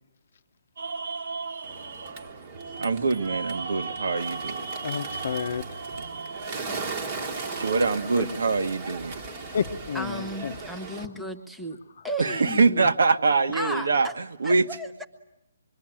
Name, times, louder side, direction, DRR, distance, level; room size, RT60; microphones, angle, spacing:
sound 1, 0.8-7.9, right 4 dB, 45° right, 0.9 m, -37 dB
Bird, 1.6-11.0, right 4 dB, 20° right, 1.4 m, -38 dB
voice 1, 2.8-4.7 7.6-9.2 12.2-14.7, right 4 dB, 65° right, 1.5 m, -24 dB
voice 2, 4.8-5.8 9.5-10.5, left 7 dB, 40° left, 0.9 m, -30 dB
voice 3, 9.9-11.8 12.0-12.9 13.5-14.1 14.4-15.0, equal, ahead, 0.9 m, -34 dB
26.0 x 23.0 x 9.0 m
hypercardioid pair, 180°, 0 cm